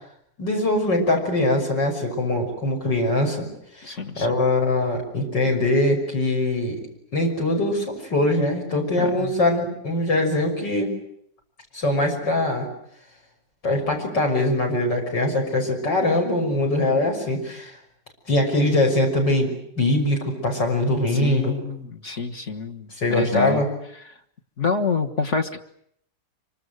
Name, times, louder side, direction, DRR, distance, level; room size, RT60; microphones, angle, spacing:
voice 1, 0.4-3.5 3.8-6.8 7.1-10.9 11.7-12.7 13.6-17.7 18.3-21.6 23.0-23.7, left 1 dB, 85° left, 2 dB, 6.7 m, -22 dB
voice 2, 3.8-4.3 9.0-9.3 21.1-23.6 24.6-25.6, left 5 dB, 45° left, 5 dB, 1.6 m, -27 dB
26.0 x 24.5 x 8.0 m, 0.71 s
omnidirectional pair, 1.9 m